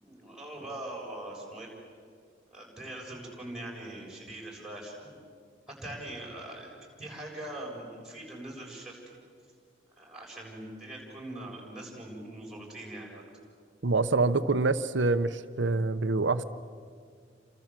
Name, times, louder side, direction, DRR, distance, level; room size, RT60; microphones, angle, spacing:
voice 1, 0.0-1.7 2.5-5.1 5.8-6.7 7.0-9.0 10.0-13.2, right 1 dB, 5° right, -4 dB, 7.4 m, -42 dB
voice 2, 13.8-16.4, right 3 dB, 75° right, 10 dB, 0.8 m, -26 dB
29.5 x 26.5 x 7.6 m, 2.1 s
head